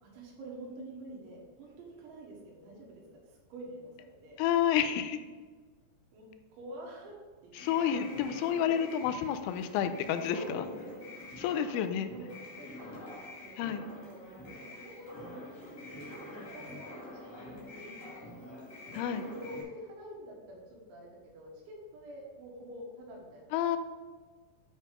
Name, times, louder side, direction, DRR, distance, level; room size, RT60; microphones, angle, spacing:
voice 1, 0.0-4.4 6.1-7.2 7.4-8.0 8.3-8.4 10.4-11.0 11.5-11.6 12.1-12.3 12.5-13.2 13.4-14.2 14.7-18.1 18.4-18.6 18.9-20.6 20.9-23.8, right 1 dB, 75° right, -2 dB, 3.7 m, -48 dB
voice 2, 4.4-5.2 7.6-10.6 11.4-12.1 13.6-13.8 18.9-19.2 23.5-23.8, left 9 dB, 90° left, 9 dB, 3.1 m, -30 dB
sound 1, 7.5-19.6, left 1 dB, 25° left, 1.9 m, -46 dB
9.1 x 4.2 x 5.1 m, 1.4 s
omnidirectional pair, 5.5 m